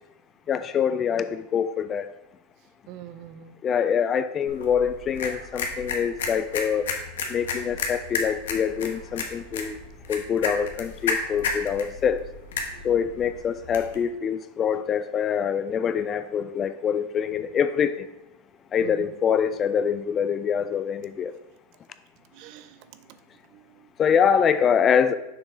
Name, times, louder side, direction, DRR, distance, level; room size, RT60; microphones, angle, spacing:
voice 1, 0.5-2.1 3.6-6.9 7.3-9.7 10.1-12.2 12.8-18.1 18.7-21.3 24.0-25.1, left 7 dB, 25° left, 12 dB, 0.3 m, -24 dB
voice 2, 2.9-3.5 12.7-12.9 18.8-19.0 22.3-23.2 23.5-23.9, right 11 dB, 50° right, 11 dB, 0.5 m, -44 dB
sound 1, 4.5-14.0, left 4 dB, 85° left, 1.0 m, -33 dB
6.6 x 3.7 x 4.4 m, 0.93 s
supercardioid pair, 135°, 0 cm